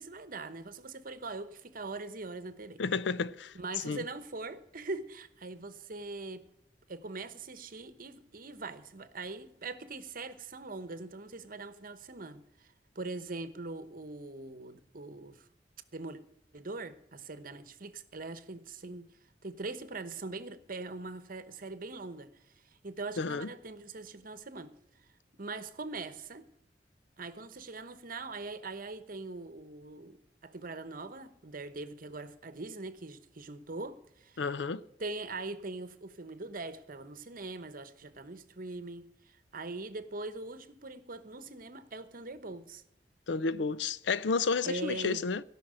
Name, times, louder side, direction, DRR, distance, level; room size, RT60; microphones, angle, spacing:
voice 1, 0.0-2.8 3.5-6.5 6.9-12.7 12.9-15.5 15.9-16.2 16.5-19.1 19.4-22.3 22.8-24.7 25.3-26.5 27.2-34.4 35.0-42.8 44.6-45.2, right 3 dB, 50° right, 1.0 m, -42 dB
voice 2, 2.8-3.6 3.8-4.0 23.2-23.5 34.4-34.8 43.3-45.4, left 4 dB, 90° left, 0.5 m, -31 dB
16.5 x 6.0 x 8.9 m
head